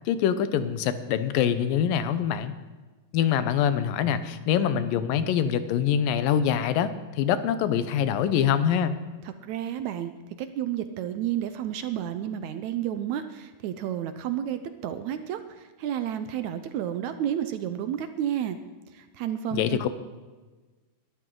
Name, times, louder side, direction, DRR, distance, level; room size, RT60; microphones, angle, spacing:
voice 1, 0.1-2.5 3.1-8.9 19.5-19.9, left 9 dB, 85° left, 12 dB, 2.6 m, -24 dB
voice 2, 9.3-10.1 10.4-18.6 18.9-19.8, right 10 dB, 75° right, 10 dB, 1.7 m, -31 dB
21.0 x 13.0 x 3.8 m, 1.3 s
omnidirectional pair, 3.9 m